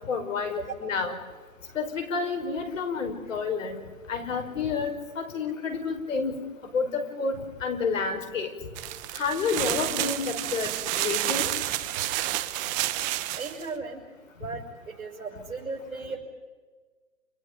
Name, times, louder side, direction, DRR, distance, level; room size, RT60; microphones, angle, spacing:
voice 1, 0.1-1.2 1.8-3.8 4.1-4.9 5.2-6.3 6.7-6.9 7.2-8.5 9.2-10.7 11.0-11.5, left 5 dB, 65° left, 6 dB, 5.5 m, -29 dB
sound 1, 8.8-13.6, right 15 dB, 20° right, 0.8 m, -30 dB
voice 2, 13.3-14.0 14.4-16.2, right 4 dB, 80° right, -3 dB, 6.7 m, -36 dB
30.0 x 29.0 x 5.3 m, 1.4 s
hypercardioid pair, 140°, 42 cm